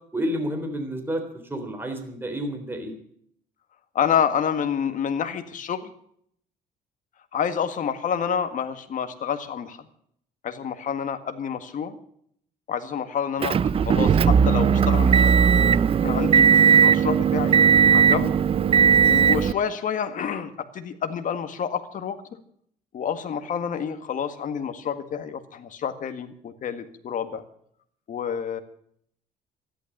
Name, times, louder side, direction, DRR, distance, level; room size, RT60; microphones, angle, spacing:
voice 1, 0.1-1.2 1.5-2.9, equal, 10° right, 4 dB, 3.8 m, -29 dB
voice 2, 3.9-5.9 7.3-9.8 10.4-12.0 12.7-15.4 16.0-17.6 17.9-18.3 19.1-22.2 22.9-27.4 28.1-28.6, left 7 dB, 50° left, 9 dB, 1.8 m, -28 dB
Motor vehicle (road) / Engine, 13.4-19.5, right 7 dB, 35° right, 0.5 m, -17 dB
13.5 x 11.5 x 7.4 m, 0.67 s
cardioid pair, 110°, 17 cm